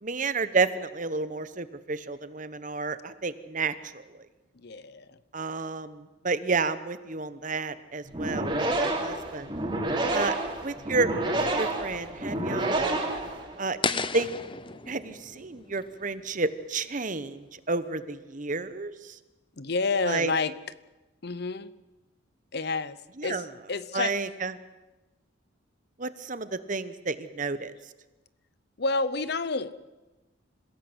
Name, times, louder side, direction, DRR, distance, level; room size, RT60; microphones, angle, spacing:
voice 1, 0.0-4.0 5.3-9.5 10.1-10.3 10.6-13.0 13.6-14.3 14.9-19.2 20.0-20.3 23.2-23.5 23.9-24.5 26.0-27.7, right 3 dB, 40° right, 13 dB, 1.1 m, -31 dB
voice 2, 4.6-5.2 19.6-20.5 21.2-21.7 22.5-23.0 23.2-24.2 28.8-29.9, left 3 dB, 55° left, 15 dB, 0.9 m, -29 dB
sound 1, 8.1-13.8, right 2 dB, 25° right, 3.9 m, -29 dB
sound 2, 13.8-16.9, left 5 dB, 25° left, 0.8 m, -34 dB
26.5 x 17.0 x 8.1 m, 1.1 s
head